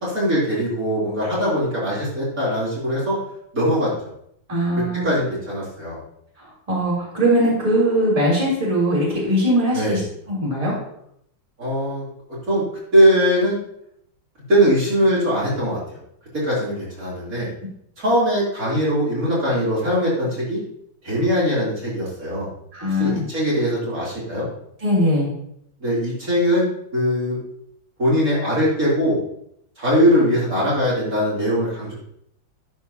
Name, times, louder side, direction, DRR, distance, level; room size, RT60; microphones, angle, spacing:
voice 1, 0.0-3.2 3.5-4.1 4.9-6.0 9.7-10.0 11.6-12.0 12.5-12.6 12.9-13.6 14.5-16.0 16.3-17.5 18.0-20.6 21.0-22.5 22.9-24.5 25.8-27.4 28.0-29.2 29.8-31.9, equal, 45° right, -8 dB, 3.8 m, -21 dB
voice 2, 4.5-5.1 6.4-10.0 10.3-10.8 22.7-23.3 24.8-25.3, equal, 15° right, -6 dB, 3.5 m, -20 dB
12.0 x 8.5 x 2.9 m, 0.73 s
omnidirectional pair, 2.2 m